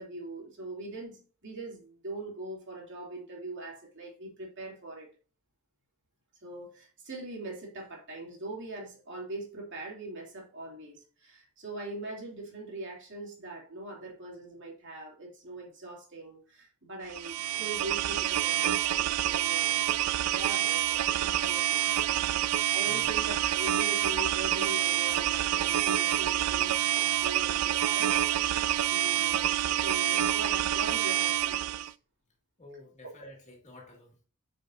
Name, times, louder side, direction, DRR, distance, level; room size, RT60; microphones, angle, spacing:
voice 1, 0.0-5.1 6.4-19.8 20.2-21.8 22.2-22.4 22.7-31.9, right 2 dB, 55° right, 2.8 m, -42 dB
sound 1, 17.1-31.9, right 12 dB, 85° right, 0.4 m, -27 dB
voice 2, 32.6-34.2, left 1 dB, 30° left, 2.1 m, -50 dB
9.1 x 5.2 x 2.6 m
head